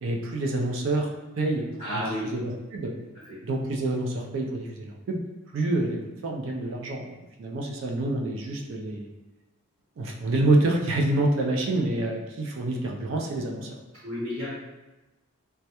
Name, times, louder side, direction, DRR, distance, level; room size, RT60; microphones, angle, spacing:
voice 1, 0.0-1.6 2.3-2.9 3.4-5.2 5.5-7.0 7.4-9.1 10.0-13.8, right 2 dB, 60° right, 1 dB, 0.3 m, -27 dB
voice 2, 1.8-2.2 3.3-3.4 14.0-14.5, equal, 30° right, -12 dB, 0.8 m, -31 dB
2.2 x 2.1 x 2.8 m, 1.1 s
head